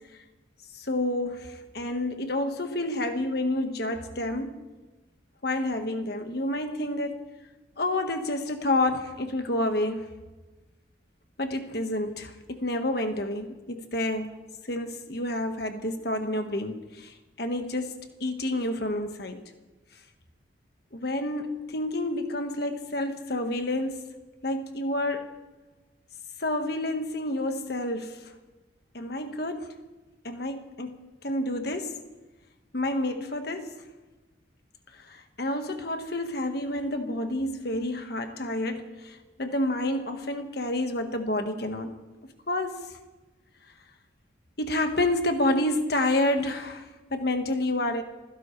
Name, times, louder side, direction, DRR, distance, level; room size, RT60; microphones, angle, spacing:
voice 1, 0.7-4.6 5.4-7.2 7.8-10.1 11.4-14.3 14.7-19.4 20.9-24.1 24.4-25.4 26.4-28.3 28.9-29.8 30.2-32.0 32.7-33.8 34.9-41.9 42.5-43.0 44.6-48.0, left 1 dB, 55° left, 6 dB, 1.5 m, -29 dB
26.0 x 16.0 x 3.3 m, 1.2 s
head